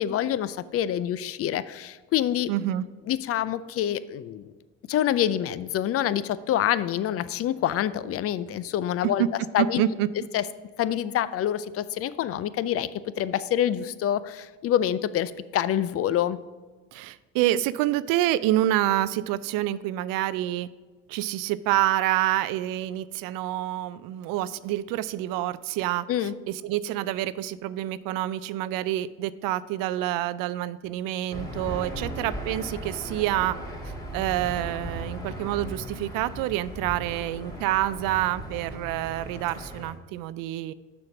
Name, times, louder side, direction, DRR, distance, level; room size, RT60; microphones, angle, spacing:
voice 1, 0.0-2.5 3.1-4.5 4.9-9.2 9.5-9.8 10.3-10.4 10.8-12.9 13.2-16.4 26.1-26.3, left 11 dB, 40° left, 16 dB, 0.4 m, -26 dB
voice 2, 2.5-2.8 9.0-10.1 16.9-20.7 21.1-33.6 34.1-40.7, right 14 dB, 60° right, 16 dB, 0.5 m, -27 dB
Aircraft / Engine, 31.3-39.9, right 1 dB, 10° left, 2.1 m, -37 dB
6.8 x 5.4 x 5.9 m, 1.3 s
hypercardioid pair, 75°, 39 cm